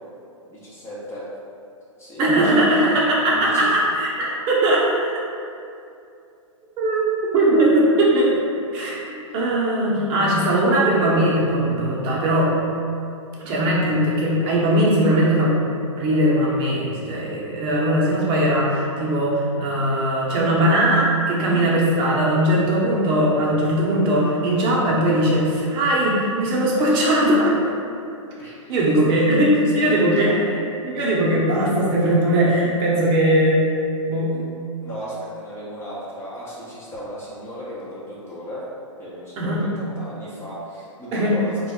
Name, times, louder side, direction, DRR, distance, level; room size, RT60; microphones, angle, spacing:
voice 1, 0.5-1.3 2.0-2.8 3.1-3.8 9.3-9.4 21.4-21.7 28.4-28.7 29.1-29.2 29.7-30.3 34.3-34.4 34.8-38.6 39.0-41.7, equal, 15° left, -8 dB, 0.4 m, -35 dB
voice 2, 2.2-5.1 6.8-8.3 8.7-12.5 13.4-15.6 16.0-27.6 28.7-30.3 30.8-33.6 34.0-34.3 39.4-39.6 41.1-41.3, right 1 dB, 30° right, -5 dB, 0.6 m, -19 dB
2.2 x 2.0 x 3.6 m, 2.6 s
hypercardioid pair, 120°, 17 cm